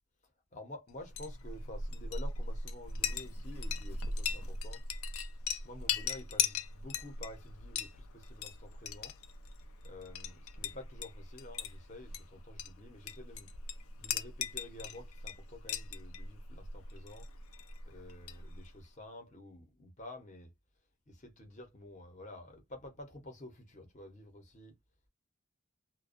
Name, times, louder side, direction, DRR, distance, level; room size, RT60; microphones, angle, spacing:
voice 1, 0.5-4.8 5.6-9.2 9.8-13.5 14.0-17.3 17.8-20.5 21.1-24.7, left 1 dB, 35° left, 0.7 m, -50 dB
Chink clink, 1.0-18.8, left 5 dB, 90° left, 0.4 m, -39 dB
2.4 x 2.2 x 2.4 m
head